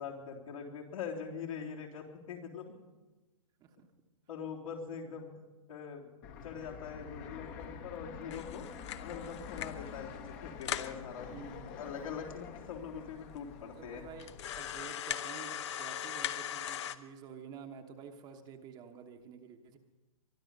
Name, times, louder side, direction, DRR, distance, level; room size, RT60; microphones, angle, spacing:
voice 1, 0.0-2.7 4.3-5.3 5.7-6.1 6.4-8.7 9.0-11.3 11.8-14.0, left 6 dB, 70° left, -2 dB, 3.5 m, -43 dB
Fixed-wing aircraft airplane, 6.2-14.9, left 7 dB, 30° left, 1.2 m, -47 dB
sound 1, 8.3-9.9 10.3-10.4 10.6-11.0 11.7-11.8 12.0-12.1 12.8-12.9 13.4-13.5 14.2-16.9, left 11 dB, 55° left, 0.8 m, -39 dB
voice 2, 11.3-11.8 13.6-19.8, right 6 dB, 25° right, 4 dB, 1.2 m, -50 dB
23.0 x 11.5 x 5.4 m, 1.2 s
hypercardioid pair, 140°, 18 cm